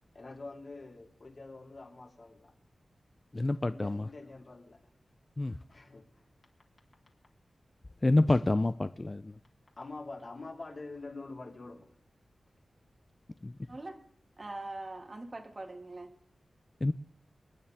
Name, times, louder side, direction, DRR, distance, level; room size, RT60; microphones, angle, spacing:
voice 1, 0.1-2.5 3.6-4.8 5.7-6.1 9.8-11.9, left 3 dB, 45° left, 3.7 m, -45 dB
voice 2, 3.3-4.0 5.4-5.5 8.0-9.3 13.4-13.5 16.8-16.9, left 2 dB, 30° left, 0.5 m, -27 dB
voice 3, 14.4-16.1, right 2 dB, 35° right, 1.9 m, -42 dB
28.5 x 10.0 x 3.6 m
wide cardioid pair, 95°, 0 cm